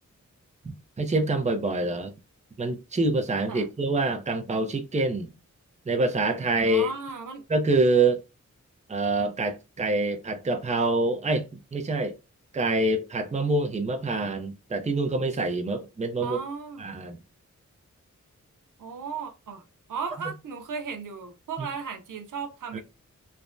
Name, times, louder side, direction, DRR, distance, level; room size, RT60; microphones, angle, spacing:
voice 1, 1.0-2.1 2.6-5.3 5.9-6.9 7.5-8.2 8.9-12.1 12.5-16.4 16.8-17.2 21.6-21.7 22.7-22.8, right 2 dB, 25° right, 0.5 m, -26 dB
voice 2, 6.6-7.4 16.2-16.9 18.8-19.6 19.9-22.8, right 5 dB, 85° right, 0.6 m, -35 dB
3.3 x 2.1 x 2.4 m
wide cardioid pair, 70°, 31 cm